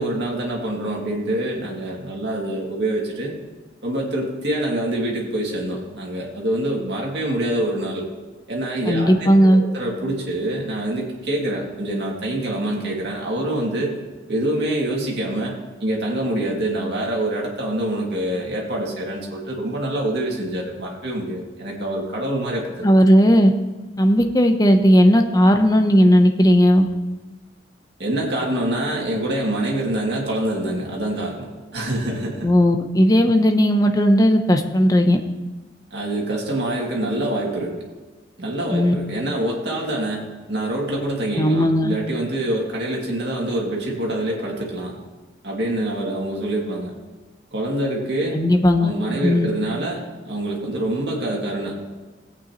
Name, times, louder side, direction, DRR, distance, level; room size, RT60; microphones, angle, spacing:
voice 1, 0.0-3.3 3.8-8.1 8.5-14.0 14.3-15.5 15.8-22.9 28.0-31.5 31.7-32.5 35.9-37.7 38.4-45.0 45.4-46.9 47.5-48.4 48.8-51.7, right 1 dB, 60° right, -2 dB, 2.3 m, -25 dB
voice 2, 8.9-9.6 22.8-23.5 24.0-26.9 32.4-35.2 38.7-38.9 41.4-41.9 48.3-48.9 49.2-49.5, equal, 20° left, 5 dB, 0.7 m, -15 dB
17.0 x 8.6 x 3.0 m, 1.3 s
head